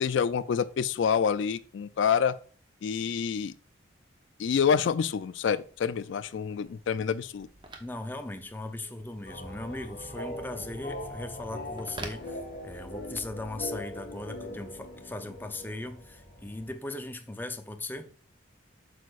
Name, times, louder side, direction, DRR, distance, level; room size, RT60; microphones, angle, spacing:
voice 1, 0.0-2.3 2.8-3.5 4.4-7.5, left 7 dB, 70° left, 0.3 m, -27 dB
Telephone, 5.3-13.1, right 2 dB, 25° right, 0.9 m, -49 dB
voice 2, 7.8-12.4 12.6-18.1, left 2 dB, 10° left, 0.6 m, -38 dB
sound 1, 9.3-16.7, left 1 dB, 45° left, 1.7 m, -41 dB
8.1 x 6.5 x 2.4 m
head